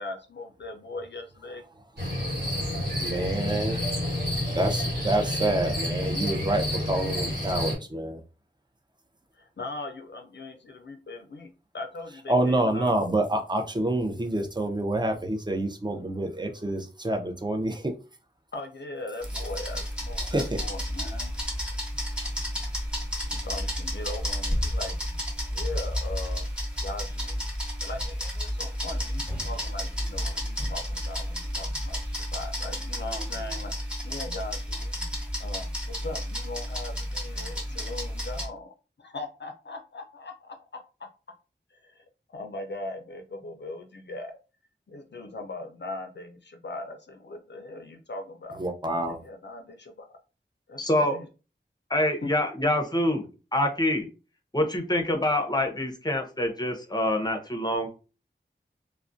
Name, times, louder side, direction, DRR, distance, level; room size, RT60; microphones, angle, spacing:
voice 1, 0.0-1.6 9.3-13.2 18.5-21.3 23.3-25.0 25.5-26.4 26.8-27.4 27.8-35.0 35.4-38.7 39.0-40.6 41.0-41.1 41.7-44.3 44.9-48.6 49.1-50.1 50.7-51.3 52.2-52.5, left 2 dB, 60° left, 0.4 m, -40 dB
sound 1, 2.0-7.8, left 1 dB, 60° right, 1.2 m, -29 dB
voice 2, 3.0-3.8 4.5-8.2 12.3-17.9 20.2-20.6 48.6-49.2, right 1 dB, 20° right, 0.5 m, -27 dB
sound 2, 19.2-38.5, equal, 5° right, 0.9 m, -31 dB
voice 3, 50.8-51.2 51.9-53.3 53.5-54.1 54.5-57.9, left 1 dB, 20° left, 0.6 m, -26 dB
2.3 x 2.1 x 2.5 m
wide cardioid pair, 50°, 20 cm